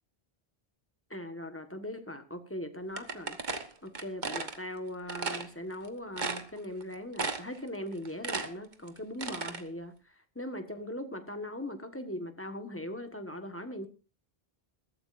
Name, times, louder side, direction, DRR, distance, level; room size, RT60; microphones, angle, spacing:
voice 1, 1.1-3.4 3.8-9.9 10.3-13.9, left 1 dB, 15° left, 7 dB, 1.5 m, -40 dB
sound 1, 3.0-4.6 5.1-5.5 5.8-5.9 6.2-6.8 7.2-7.6 7.9-9.6, right 4 dB, 50° right, 1.3 m, -35 dB
21.5 x 13.5 x 2.6 m, 0.32 s
omnidirectional pair, 1.1 m